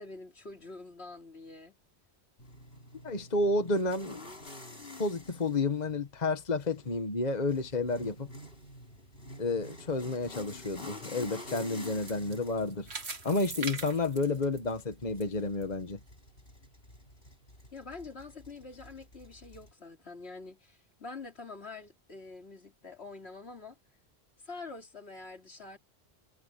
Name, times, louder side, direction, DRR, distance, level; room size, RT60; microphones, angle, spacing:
voice 1, 0.0-1.8 17.7-23.8 24.4-25.8, left 3 dB, 75° left, 3.3 m, -46 dB
sound 1, 2.4-19.7, left 1 dB, 60° left, 4.4 m, -49 dB
voice 2, 3.0-4.2 5.0-8.3 9.4-12.9 13.2-16.0, left 3 dB, 40° left, 1.5 m, -31 dB
sound 2, 10.3-15.2 15.6-15.7 16.3-16.4, right 4 dB, 75° right, 2.2 m, -43 dB
omnidirectional pair, 1.1 m